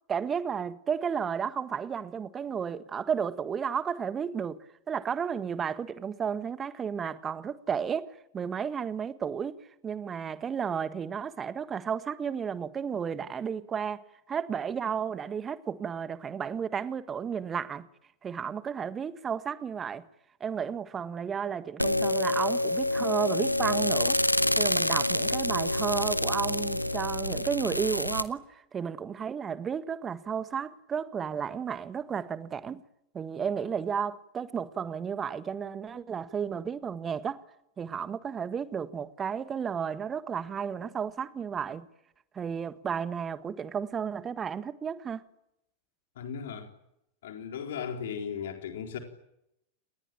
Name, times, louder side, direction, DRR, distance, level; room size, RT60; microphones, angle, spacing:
voice 1, 0.1-4.6 4.9-9.6 9.8-14.0 14.3-17.9 18.2-20.0 20.4-24.2 24.6-32.8 33.1-37.4 37.8-41.9 42.3-45.2, right 7 dB, 20° right, 1.5 m, -33 dB
sound 1, 21.8-28.2, left 1 dB, 90° left, 1.1 m, -27 dB
voice 2, 46.2-46.7 47.2-49.0, left 7 dB, 60° left, 4.2 m, -36 dB
29.5 x 21.0 x 9.2 m
figure-of-eight pair, 90°, 0 cm